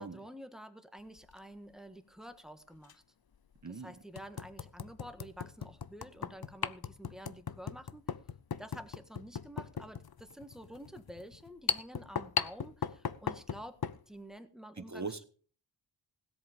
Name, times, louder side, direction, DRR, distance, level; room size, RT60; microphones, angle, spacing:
voice 1, 0.0-3.0 3.7-8.0 8.6-13.8 14.1-15.2, equal, ahead, 1.5 m, -49 dB
sound 1, 1.2-1.4 2.8-2.9 3.5-3.6 4.1-14.0, left 7 dB, 50° left, 0.7 m, -38 dB
voice 2, 3.6-3.9 14.8-15.2, right 4 dB, 35° right, 1.2 m, -40 dB
17.0 x 7.8 x 5.2 m
wide cardioid pair, 50°, 48 cm